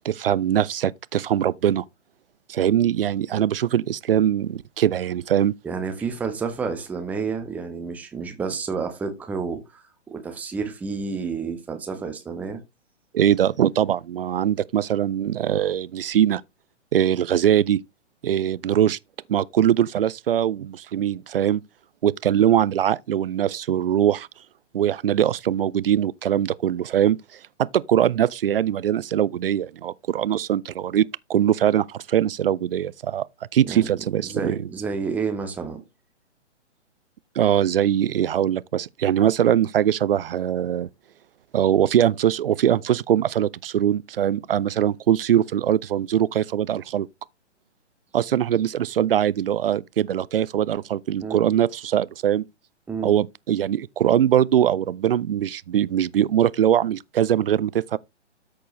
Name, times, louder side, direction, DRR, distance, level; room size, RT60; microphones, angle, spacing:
voice 1, 0.0-1.8 2.5-5.5 13.1-16.4 16.9-17.8 18.2-19.0 19.3-21.6 22.0-24.3 24.7-27.2 27.6-33.3 33.5-34.6 37.4-40.9 41.5-47.1 48.1-52.4 53.0-58.0, right 10 dB, 50° right, 0.4 m, -22 dB
voice 2, 5.6-12.6 33.6-33.9 34.2-35.8 51.2-51.5 52.9-53.1, right 5 dB, 5° right, 0.7 m, -30 dB
13.5 x 4.5 x 3.0 m
figure-of-eight pair, 125°, 36 cm